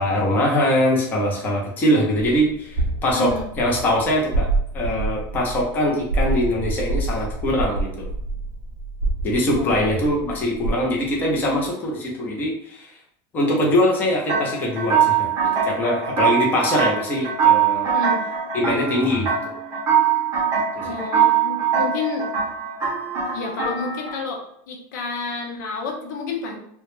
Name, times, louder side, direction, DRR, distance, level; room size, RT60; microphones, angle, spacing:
voice 1, 0.0-4.5 4.7-8.1 9.2-12.9 13.3-17.9 18.5-19.6 20.6-20.9, left 1 dB, 20° left, -2 dB, 0.5 m, -22 dB
sound 1, 2.5-11.7, right 2 dB, 75° right, 0.4 m, -27 dB
voice 2, 3.1-3.5 9.5-9.9 17.9-18.2 20.8-22.3 23.2-26.6, left 3 dB, 85° left, 1 dB, 0.6 m, -30 dB
sound 2, 14.3-24.2, right 8 dB, 25° right, 0.6 m, -22 dB
2.2 x 2.0 x 3.0 m, 0.71 s
supercardioid pair, 170°, 10 cm